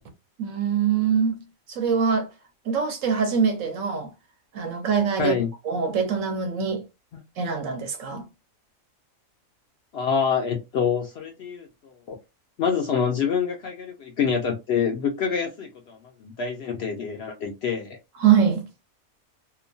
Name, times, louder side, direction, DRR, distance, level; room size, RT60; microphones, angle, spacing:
voice 1, 0.4-1.4 1.7-2.3 2.7-4.1 4.5-5.4 5.6-6.8 7.4-8.2 18.2-18.6, right 7 dB, 70° right, 1.0 m, -23 dB
voice 2, 9.9-11.7 12.1-12.2 12.6-18.0, left 6 dB, 65° left, 0.7 m, -26 dB
2.8 x 2.1 x 2.5 m
omnidirectional pair, 1.5 m